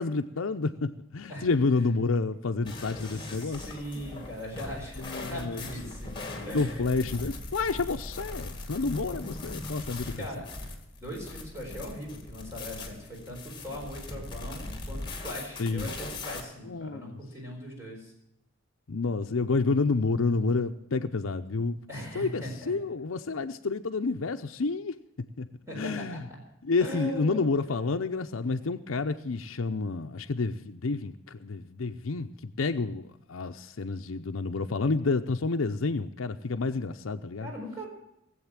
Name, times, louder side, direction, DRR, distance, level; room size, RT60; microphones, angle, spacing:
voice 1, 0.0-3.7 5.1-5.6 6.5-10.2 15.6-15.9 16.7-17.2 18.9-21.8 22.1-24.9 25.4-25.5 25.8-26.2 26.6-37.5, left 3 dB, 90° left, 6 dB, 0.7 m, -29 dB
sound 1, 2.6-16.4, left 2 dB, 25° left, 2.3 m, -40 dB
voice 2, 3.0-7.1 10.1-10.5 11.0-18.1 21.9-22.8 25.7-26.4 26.8-27.8 37.4-37.9, equal, 15° right, -2 dB, 4.4 m, -40 dB
18.0 x 7.9 x 7.3 m, 0.83 s
head